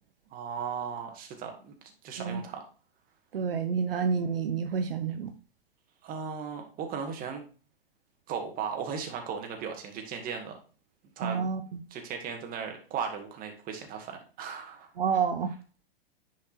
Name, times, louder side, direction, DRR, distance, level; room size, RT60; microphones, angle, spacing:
voice 1, 0.3-1.7 2.0-2.6 6.0-7.4 8.3-10.6 11.2-11.5 11.9-14.9, right 6 dB, 30° right, 4 dB, 2.0 m, -36 dB
voice 2, 3.3-5.3 11.2-11.8 15.0-15.5, right 6 dB, 70° right, 8 dB, 0.8 m, -29 dB
10.0 x 5.3 x 2.6 m, 0.37 s
figure-of-eight pair, 105°, 30 cm